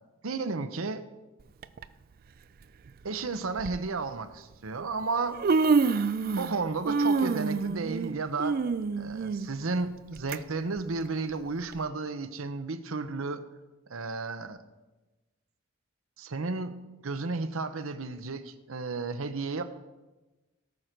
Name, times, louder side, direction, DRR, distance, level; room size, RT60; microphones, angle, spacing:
voice 1, 0.2-1.0 3.0-5.4 6.4-8.6 9.0-13.4 13.9-14.6 16.2-16.8 17.0-19.6, right 3 dB, 90° right, 10 dB, 0.8 m, -33 dB
Human voice, 1.6-1.8 2.9-3.0 3.6-3.8 4.8-4.9 5.2-6.6 6.8-10.4 10.8-10.9 11.7-11.8, right 4 dB, 45° right, 0.4 m, -27 dB
18.0 x 6.7 x 4.5 m, 1.1 s
head